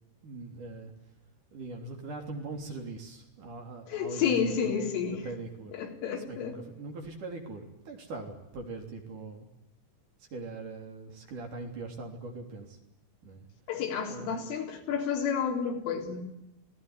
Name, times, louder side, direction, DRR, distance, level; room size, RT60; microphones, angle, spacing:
voice 1, 0.2-1.1 1.5-5.7 6.3-9.5 10.2-12.8 13.2-13.5 14.1-14.4, right 3 dB, 45° right, 3 dB, 4.5 m, -41 dB
voice 2, 3.9-5.2 5.7-6.6 13.7-16.2, left 7 dB, 85° left, 2 dB, 6.3 m, -30 dB
27.0 x 18.0 x 9.9 m, 0.91 s
omnidirectional pair, 5.6 m